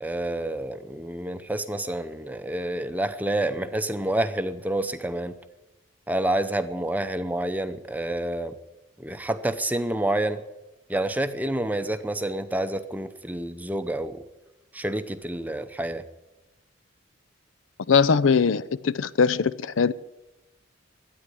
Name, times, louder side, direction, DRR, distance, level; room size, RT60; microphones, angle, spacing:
voice 1, 0.0-5.4 6.1-8.6 9.0-10.4 10.9-14.2 14.7-16.0, right 1 dB, 10° right, 10 dB, 0.6 m, -28 dB
voice 2, 17.9-19.9, left 5 dB, 75° left, 17 dB, 0.5 m, -21 dB
13.0 x 9.5 x 10.0 m, 1.0 s
head